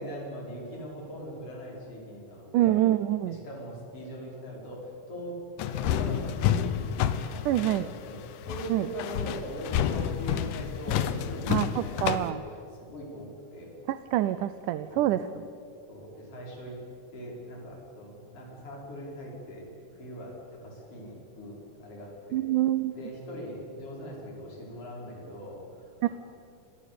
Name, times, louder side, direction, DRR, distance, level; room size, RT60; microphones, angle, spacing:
voice 1, 0.0-2.8 3.3-6.4 6.6-12.6 12.9-13.7 14.9-15.1 15.9-16.8 17.1-19.7 19.9-20.4 20.6-22.4 22.9-26.1, equal, 45° left, -3 dB, 6.3 m, -41 dB
voice 2, 2.5-3.4 7.5-7.9 8.7-8.9 11.5-12.4 13.9-15.2 22.3-22.9 26.0-26.1, right 13 dB, 80° right, 13 dB, 2.2 m, -26 dB
sound 1, 5.6-12.3, left 9 dB, 85° left, 2.6 m, -29 dB
27.0 x 18.5 x 8.6 m, 2.6 s
omnidirectional pair, 3.7 m